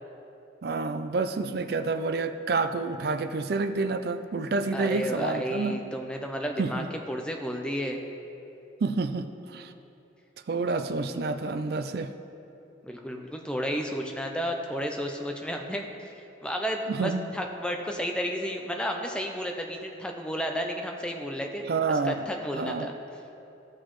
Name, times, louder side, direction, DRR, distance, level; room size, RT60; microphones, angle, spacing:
voice 1, 0.6-5.8 6.6-6.9 8.8-9.7 10.5-12.1 16.9-17.3 21.7-22.2 22.5-22.9, right 3 dB, 55° right, 9 dB, 0.4 m, -28 dB
voice 2, 4.7-8.0 12.8-15.8 16.4-21.6 22.0-22.9, equal, 5° left, 2 dB, 0.5 m, -32 dB
13.5 x 6.3 x 3.1 m, 2.9 s
head